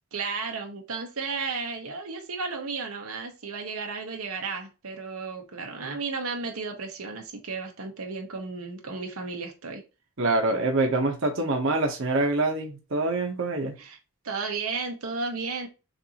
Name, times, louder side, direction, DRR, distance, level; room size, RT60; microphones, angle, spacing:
voice 1, 0.1-9.8 13.8-14.0 14.2-15.7, right 4 dB, 90° right, 1.0 m, -33 dB
voice 2, 10.2-13.7, right 2 dB, 65° right, 1.0 m, -25 dB
6.7 x 2.6 x 2.9 m
head